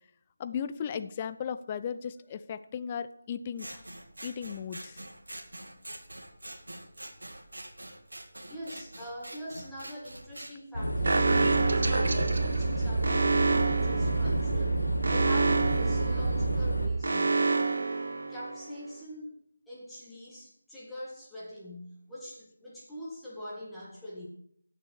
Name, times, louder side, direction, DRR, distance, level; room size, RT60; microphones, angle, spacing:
voice 1, 0.4-3.7 4.2-5.0, left 7 dB, 20° left, 12 dB, 0.5 m, -36 dB
Scissors, 3.6-10.5, right 1 dB, 70° right, 2.1 m, -45 dB
voice 2, 8.4-17.4 18.3-19.4 19.7-24.3, equal, ahead, -9 dB, 1.9 m, -43 dB
sound 1, 10.7-16.9, right 2 dB, 80° left, 2.2 m, -28 dB
Alarm, 11.0-18.8, right 3 dB, 50° right, 1.3 m, -29 dB
15.5 x 6.9 x 4.7 m, 0.66 s
figure-of-eight pair, 160°, 0 cm